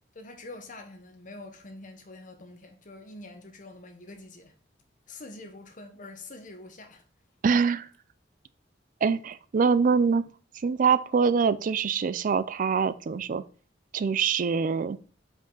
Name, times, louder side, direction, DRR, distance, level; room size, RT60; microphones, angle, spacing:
voice 1, 0.1-4.5 5.1-7.0, left 2 dB, 45° left, 1.1 m, -45 dB
voice 2, 7.4-7.9 9.0-10.3 10.6-13.4 13.9-15.0, right 5 dB, 45° right, 0.4 m, -24 dB
5.3 x 5.1 x 3.9 m
head